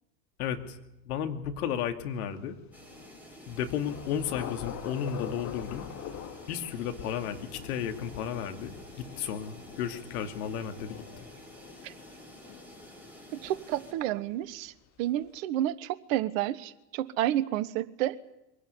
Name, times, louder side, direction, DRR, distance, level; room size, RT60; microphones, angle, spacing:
voice 1, 0.4-0.8 1.0-2.6 3.5-5.8 6.5-11.0, left 8 dB, 60° left, 6 dB, 2.6 m, -33 dB
Thunder / Rain, 2.7-14.3, left 10 dB, 35° left, 2.1 m, -45 dB
sound 1, 2.7-13.9, equal, 5° right, 7.5 m, -50 dB
voice 2, 13.3-18.2, right 13 dB, 50° right, 16 dB, 1.3 m, -30 dB
23.5 x 17.5 x 9.8 m, 0.90 s
figure-of-eight pair, 90°, 50 cm